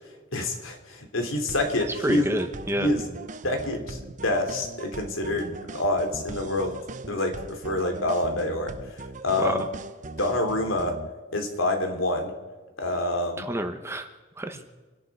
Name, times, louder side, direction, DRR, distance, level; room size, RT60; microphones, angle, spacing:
voice 1, 0.3-2.3 2.8-3.0 3.4-6.8 7.1-9.6 10.2-11.0 11.3-12.3 12.8-13.4, left 1 dB, 90° left, 4 dB, 3.0 m, -27 dB
sound 1, 1.5-11.1, right 2 dB, 40° right, 0.7 m, -40 dB
voice 2, 2.0-2.9 9.4-9.6 13.4-14.1 14.4-14.6, right 1 dB, 15° right, 7 dB, 1.1 m, -28 dB
27.5 x 11.0 x 4.8 m, 1.3 s
head